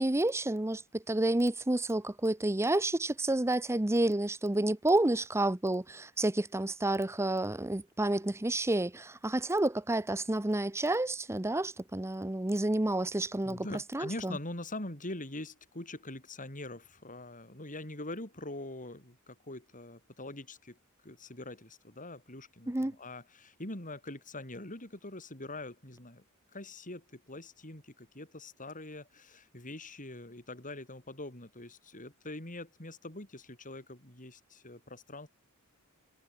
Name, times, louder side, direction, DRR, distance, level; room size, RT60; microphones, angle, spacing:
voice 1, 0.0-13.6 13.9-14.4 22.7-22.9, right 1 dB, 10° right, 0.7 m, -30 dB
voice 2, 13.4-20.8 21.0-26.2 26.5-35.3, left 2 dB, 35° left, 6.9 m, -43 dB
head